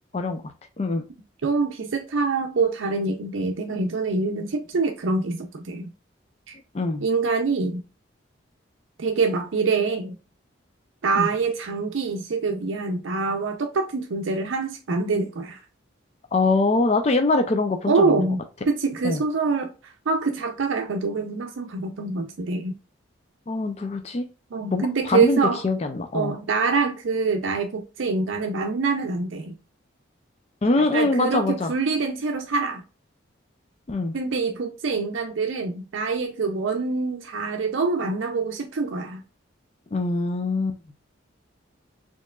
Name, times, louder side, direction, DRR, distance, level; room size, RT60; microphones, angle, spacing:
voice 1, 1.4-5.9 6.5-6.6 7.0-7.8 9.0-10.2 11.0-15.6 17.9-22.8 24.5-25.6 26.1-29.5 30.8-32.8 34.1-39.2, right 4 dB, 85° right, 0.5 m, -25 dB
voice 2, 16.3-18.2 19.0-19.2 23.5-24.3 24.7-26.3 30.6-31.7 33.9-34.1 39.9-40.8, left 2 dB, 35° left, 0.4 m, -23 dB
4.3 x 2.9 x 2.3 m
head